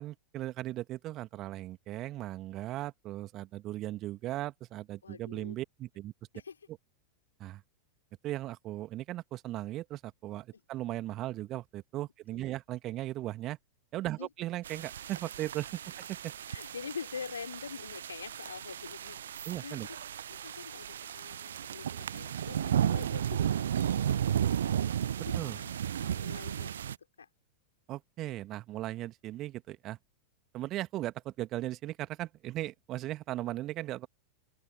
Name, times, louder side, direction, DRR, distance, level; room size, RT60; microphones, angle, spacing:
voice 1, 0.0-6.1 7.4-7.6 8.2-13.6 13.9-16.3 19.5-19.9 25.3-25.6 27.9-30.0 30.5-34.1, right 15 dB, 35° right, 1.9 m, -37 dB
voice 2, 5.0-5.6 6.3-6.6 10.5-10.6 12.3-12.5 14.0-14.3 16.5-20.0 20.3-26.9 27.2-27.3, left 6 dB, 70° left, 4.4 m, -46 dB
sound 1, 14.6-27.0, right 9 dB, 65° right, 0.5 m, -34 dB
figure-of-eight pair, 90°, 0 cm